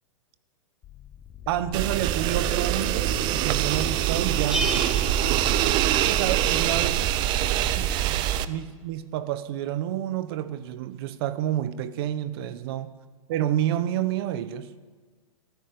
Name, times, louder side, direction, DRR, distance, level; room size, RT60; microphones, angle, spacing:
sound 1, 0.8-8.7, left 9 dB, 20° left, 0.6 m, -43 dB
voice 1, 1.5-4.7 6.0-7.1 7.7-12.9 13.3-14.7, right 12 dB, 45° right, 1.0 m, -29 dB
sound 2, 1.7-8.4, right 12 dB, 25° right, 0.6 m, -24 dB
Bell, 4.5-6.3, equal, 5° right, 1.2 m, -33 dB
14.0 x 13.5 x 6.7 m
hypercardioid pair, 150°, 18 cm